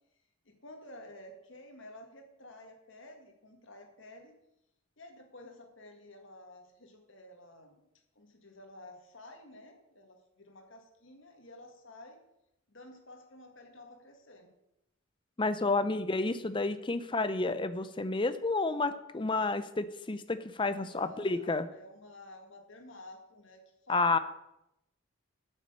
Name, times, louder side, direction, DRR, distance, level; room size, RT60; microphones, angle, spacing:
voice 1, 0.5-4.4 5.0-7.8 8.2-12.2 12.7-14.5 20.7-24.2, left 1 dB, 60° left, 4 dB, 1.8 m, -52 dB
voice 2, 15.4-21.7 23.9-24.2, left 3 dB, 25° left, 12 dB, 0.5 m, -30 dB
8.4 x 6.2 x 8.1 m, 0.86 s
head